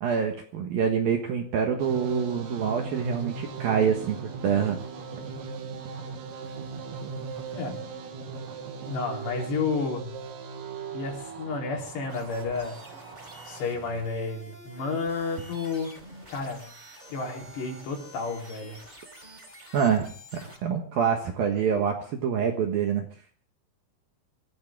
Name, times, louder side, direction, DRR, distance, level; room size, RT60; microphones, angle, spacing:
voice 1, 0.0-4.2 4.4-4.8 19.7-20.1 20.4-23.1, right 7 dB, 60° right, 4 dB, 2.6 m, -26 dB
sound 1, 1.8-13.6, right 5 dB, 85° right, 5.0 m, -38 dB
voice 2, 7.5-8.0 8.9-10.2 10.9-12.8 13.5-15.9 16.3-16.7 17.1-18.8, left 4 dB, 60° left, 0 dB, 5.8 m, -31 dB
sound 2, 12.1-20.6, equal, 10° right, 4.2 m, -48 dB
25.0 x 15.0 x 3.6 m, 0.43 s
omnidirectional pair, 5.7 m